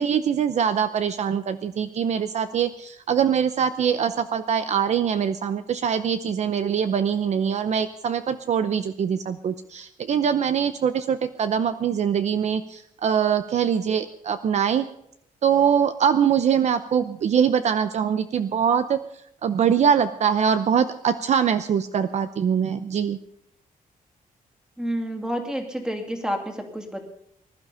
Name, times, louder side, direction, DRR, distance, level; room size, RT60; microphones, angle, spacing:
voice 1, 0.0-14.9 15.4-19.0 19.4-23.2, right 7 dB, 50° right, 10 dB, 0.7 m, -23 dB
voice 2, 24.8-27.1, equal, 5° right, 4 dB, 2.5 m, -29 dB
20.5 x 12.0 x 5.6 m, 0.75 s
wide cardioid pair, 170°, 15 cm